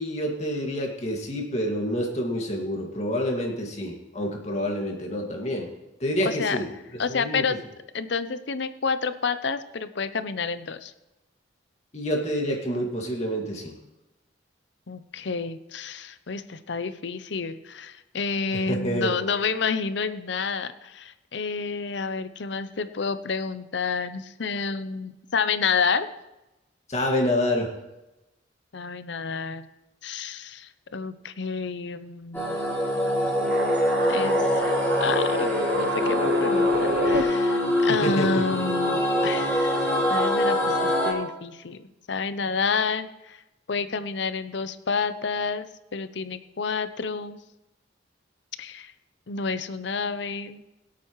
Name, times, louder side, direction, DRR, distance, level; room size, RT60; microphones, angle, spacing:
voice 1, 0.0-5.7 6.0-6.7 7.1-7.4 11.9-13.7 18.7-19.2 26.9-27.7 37.9-38.4, equal, 35° left, 0 dB, 2.1 m, -27 dB
voice 2, 6.3-6.6 7.0-7.6 7.9-10.9 14.9-26.1 28.7-29.7 30.0-32.6 34.1-35.5 35.8-43.4 43.7-45.7 45.9-47.4 48.6-48.9 49.3-50.6, left 5 dB, 60° left, 12 dB, 0.6 m, -29 dB
sound 1, 32.3-41.1, left 1 dB, 10° left, 2.8 m, -24 dB
sound 2, 33.4-37.2, right 1 dB, 55° right, 1.2 m, -29 dB
22.0 x 8.4 x 3.1 m, 1.0 s
head